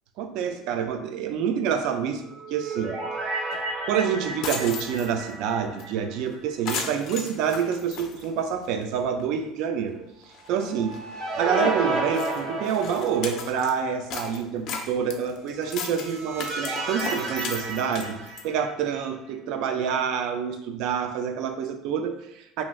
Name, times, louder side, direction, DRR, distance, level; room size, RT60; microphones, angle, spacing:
voice 1, 0.2-2.2 2.5-3.0 3.9-10.9 11.4-18.2 18.4-22.6, right 7 dB, 65° right, 7 dB, 0.3 m, -27 dB
sound 1, 2.2-6.5 6.8-6.9 10.4-13.5 15.6-19.0, right 2 dB, 40° right, 1.0 m, -32 dB
sound 2, 3.5-3.6 4.0-4.1 4.3-5.3 5.8-5.9 6.2-6.3 6.7-8.8 9.2-9.3 9.9-10.0 10.2-10.5 10.9-11.0 11.6-11.7 12.1-13.7 14.1-18.5, left 5 dB, 55° left, 0.4 m, -36 dB
3.1 x 2.5 x 2.3 m, 0.84 s
supercardioid pair, 125°, 0 cm